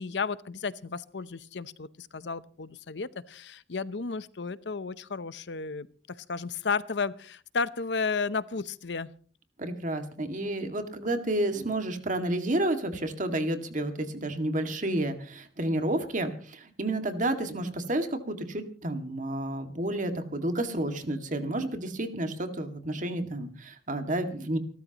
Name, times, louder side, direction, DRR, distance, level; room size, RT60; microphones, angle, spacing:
voice 1, 0.0-9.1, left 4 dB, 85° left, 16 dB, 0.8 m, -33 dB
voice 2, 9.6-24.6, right 1 dB, 45° right, 6 dB, 2.1 m, -30 dB
29.0 x 13.5 x 3.0 m, 0.42 s
head